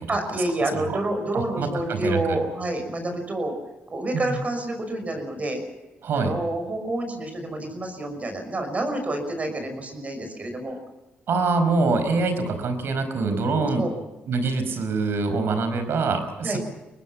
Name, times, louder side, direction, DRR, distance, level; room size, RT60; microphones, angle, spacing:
voice 1, 0.1-3.5 3.9-5.6 6.1-10.8 13.6-13.9 16.4-16.6, right 1 dB, 35° right, 5 dB, 6.0 m, -28 dB
voice 2, 1.3-2.4 4.1-4.3 6.0-6.3 11.3-13.9 14.3-16.6, right 3 dB, 65° right, 9 dB, 4.9 m, -25 dB
24.0 x 19.5 x 7.3 m, 1.0 s
cardioid pair, 90°, 4 cm